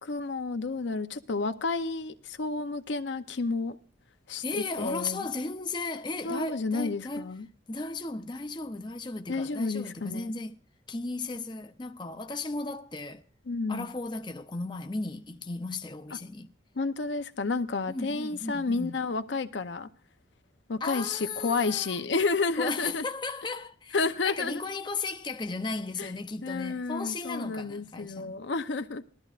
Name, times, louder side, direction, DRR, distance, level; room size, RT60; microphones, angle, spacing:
voice 1, 0.0-3.8 4.3-5.3 6.2-7.5 9.3-10.3 13.5-13.9 16.8-19.9 20.7-23.0 23.9-24.6 26.0-26.1 26.4-29.0, left 3 dB, 75° left, 0.6 m, -31 dB
voice 2, 4.4-7.3 7.7-10.5 10.9-13.2 13.7-16.5 17.9-19.0 20.8-22.0 22.6-28.4, left 3 dB, 25° left, 0.6 m, -35 dB
19.5 x 13.0 x 2.4 m
head